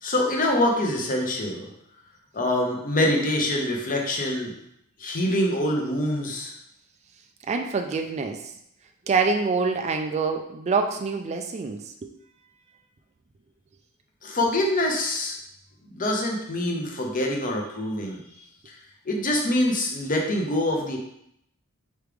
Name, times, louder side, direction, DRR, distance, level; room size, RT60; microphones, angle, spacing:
voice 1, 0.0-1.7 2.3-4.6 5.0-6.5 14.2-15.4 15.9-18.2 18.7-18.8 19.1-21.0, left 1 dB, 40° left, 1 dB, 0.8 m, -25 dB
voice 2, 7.5-8.5 9.1-12.1, right 4 dB, 30° right, 5 dB, 0.3 m, -26 dB
4.7 x 3.2 x 3.4 m, 0.75 s
head